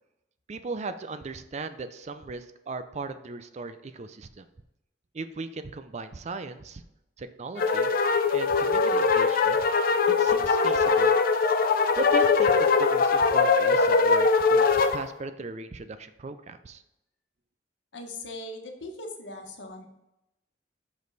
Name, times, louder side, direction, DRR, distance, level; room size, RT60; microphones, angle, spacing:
voice 1, 0.5-4.5 5.1-6.8 7.2-7.9 8.3-9.7 10.2-11.1 12.0-16.8, right 3 dB, 40° right, 10 dB, 0.5 m, -38 dB
sound 1, 7.6-15.0, left 4 dB, 55° left, 0.5 m, -22 dB
voice 2, 17.9-19.9, left 2 dB, 90° left, 3 dB, 1.1 m, -40 dB
6.2 x 5.2 x 4.0 m, 0.89 s
head